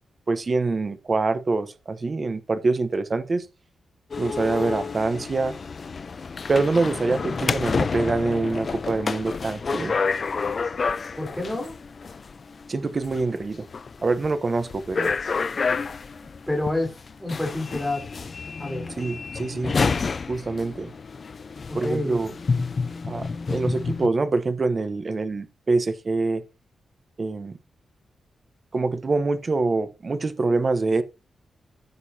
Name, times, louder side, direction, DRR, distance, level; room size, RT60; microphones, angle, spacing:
voice 1, 0.3-3.5 4.2-5.5 6.5-10.0 12.7-13.7 14.0-15.1 19.0-19.7 20.3-20.9 21.7-22.3 23.1-26.4 27.2-27.6 28.7-31.0, right 3 dB, 30° right, 1.0 m, -25 dB
sound 1, 4.1-24.1, left 5 dB, 35° left, 0.7 m, -29 dB
voice 2, 11.2-11.8 16.5-16.9 17.2-18.0 18.6-18.8 21.7-22.2, left 1 dB, ahead, 3.8 m, -28 dB
15.0 x 6.6 x 2.8 m
wide cardioid pair, 155°, 0 cm